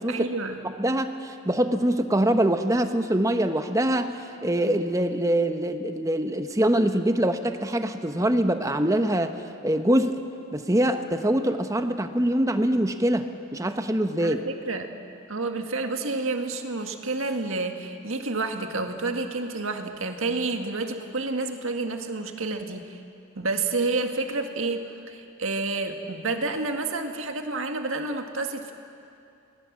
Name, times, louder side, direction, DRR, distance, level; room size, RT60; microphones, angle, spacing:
voice 1, 0.1-0.6 14.2-14.9 15.3-23.0 23.4-28.7, right 3 dB, 75° right, 5 dB, 1.9 m, -29 dB
voice 2, 0.6-9.3 9.6-10.2 10.5-14.4, right 1 dB, 15° right, 7 dB, 1.0 m, -24 dB
26.5 x 20.0 x 7.4 m, 2.6 s
head